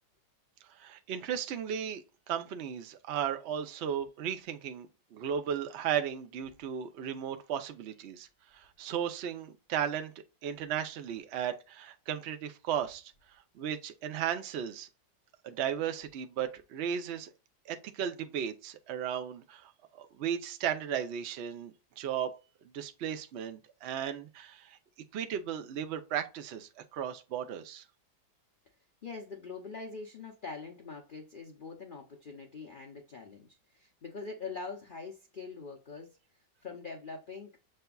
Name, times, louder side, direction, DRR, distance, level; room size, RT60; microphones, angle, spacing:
voice 1, 0.7-8.3 8.5-10.1 10.4-13.1 13.5-14.9 15.4-17.3 17.7-19.7 20.0-22.3 22.7-24.8 25.1-27.8, right 9 dB, 65° right, 0.6 m, -35 dB
voice 2, 29.0-36.2 36.6-37.5, left 4 dB, 80° left, 0.4 m, -43 dB
6.7 x 3.3 x 2.3 m
omnidirectional pair, 1.9 m